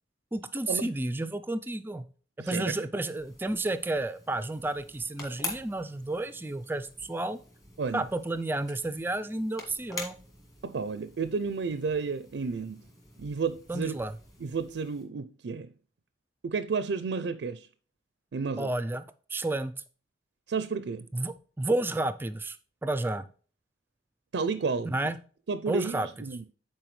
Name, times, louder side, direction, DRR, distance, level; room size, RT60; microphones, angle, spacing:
voice 1, 0.3-2.1 2.5-7.4 7.9-10.2 13.7-14.1 18.6-19.7 21.1-22.6 22.8-23.3 24.8-25.2 25.7-26.1, right 2 dB, 10° right, 0.4 m, -31 dB
voice 2, 2.4-2.7 7.8-8.0 10.6-12.8 13.2-14.0 14.4-15.7 16.4-17.7 18.3-18.7 20.5-21.1 24.3-24.9 25.5-26.4, right 5 dB, 75° right, 0.4 m, -31 dB
sound 1, 3.1-15.0, left 2 dB, 20° left, 1.9 m, -46 dB
9.1 x 4.5 x 3.2 m
head